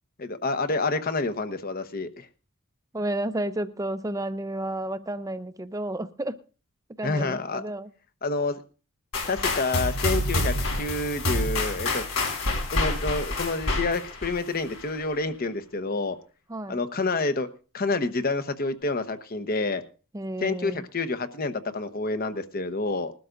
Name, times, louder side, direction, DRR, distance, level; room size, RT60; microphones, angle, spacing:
voice 1, 0.2-2.3 7.0-7.6 8.2-8.6 9.3-12.0 12.7-16.2 16.7-17.5 17.7-19.8 20.4-23.1, left 3 dB, 45° left, 1.0 m, -28 dB
voice 2, 2.9-6.4 7.0-7.9 16.5-16.8 20.1-20.9, right 1 dB, 15° right, 0.6 m, -31 dB
sound 1, 9.1-15.0, left 2 dB, 80° left, 5.2 m, -28 dB
21.0 x 12.5 x 2.6 m
head